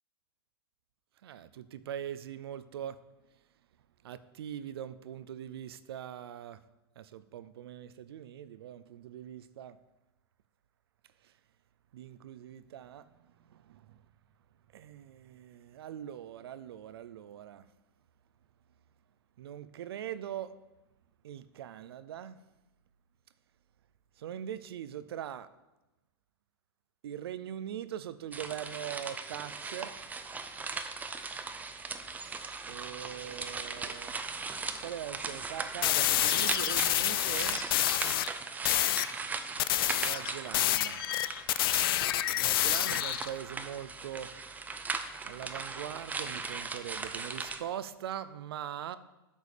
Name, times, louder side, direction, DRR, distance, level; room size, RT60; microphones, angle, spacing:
voice 1, 1.2-3.0 4.0-6.6 7.0-9.8 11.9-13.1 13.5-14.0 14.7-17.6 19.4-20.5 21.2-22.4 24.2-25.5 27.0-29.9 32.7-34.2 34.8-37.6 39.9-41.0 42.0-44.3 45.2-49.0, right 10 dB, 75° right, 0.5 m, -42 dB
sound 1, 28.3-47.6, right 4 dB, 10° right, 0.5 m, -39 dB
sound 2, 35.8-38.3 38.6-39.1 39.6-43.3, left 14 dB, 65° left, 0.4 m, -28 dB
8.5 x 4.7 x 5.1 m
hypercardioid pair, 110°, 13 cm